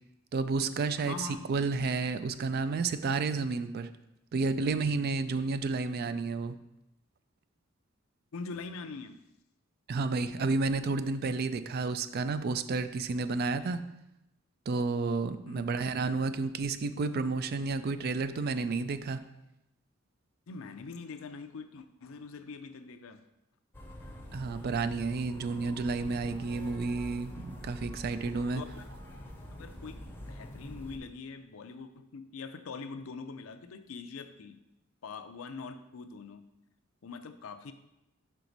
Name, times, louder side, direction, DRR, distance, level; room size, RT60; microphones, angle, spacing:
voice 1, 0.3-3.9 4.3-6.6 9.9-13.8 14.7-19.2 24.3-28.6, right 4 dB, 50° right, 12 dB, 0.3 m, -31 dB
voice 2, 1.1-1.5 8.3-9.2 15.5-15.6 20.5-23.2 28.5-28.9 29.6-34.6 35.0-36.5 37.0-37.7, left 4 dB, 80° left, 9 dB, 0.5 m, -43 dB
sound 1, 23.7-31.0, equal, 10° left, 0.6 m, -45 dB
5.9 x 4.5 x 4.0 m, 0.89 s
head